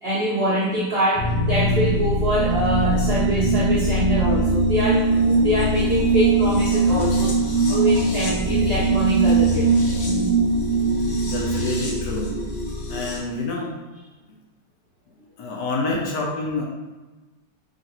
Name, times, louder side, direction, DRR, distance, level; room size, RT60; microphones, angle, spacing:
voice 1, 0.0-9.7 10.0-10.3 15.8-16.0, equal, 70° right, -7 dB, 0.5 m, -24 dB
sound 1, 1.2-13.2, right 2 dB, 85° left, 1.7 m, -21 dB
voice 2, 11.2-12.4 12.9-13.7 15.4-16.6, left 3 dB, 70° left, -1 dB, 1.2 m, -28 dB
3.7 x 2.5 x 4.2 m, 1.2 s
omnidirectional pair, 2.1 m